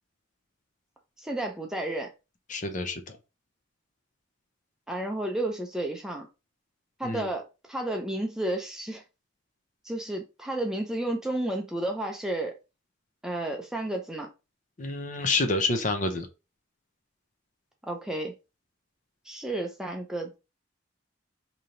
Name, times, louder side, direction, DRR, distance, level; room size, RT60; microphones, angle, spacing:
voice 1, 1.2-2.1 4.9-6.3 7.0-9.0 9.8-12.5 13.2-14.3 17.8-18.3 19.3-20.3, right 1 dB, 5° right, 0.5 m, -32 dB
voice 2, 2.5-3.2 7.0-7.3 14.8-16.3, left 3 dB, 40° left, 0.6 m, -28 dB
3.3 x 2.8 x 3.8 m
head